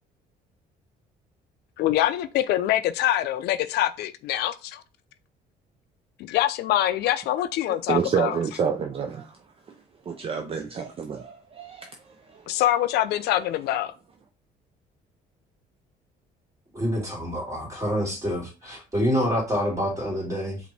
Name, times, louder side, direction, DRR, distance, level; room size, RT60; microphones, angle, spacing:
voice 1, 1.8-4.8 6.2-8.4 12.5-13.9, left 13 dB, 75° left, 0.4 m, -24 dB
voice 2, 7.9-9.4 10.1-11.9 12.3-12.5, right 6 dB, 35° right, 0.5 m, -28 dB
voice 3, 16.7-20.6, equal, 20° right, 2.4 m, -27 dB
5.0 x 2.7 x 3.3 m
cardioid pair, 110°, 17 cm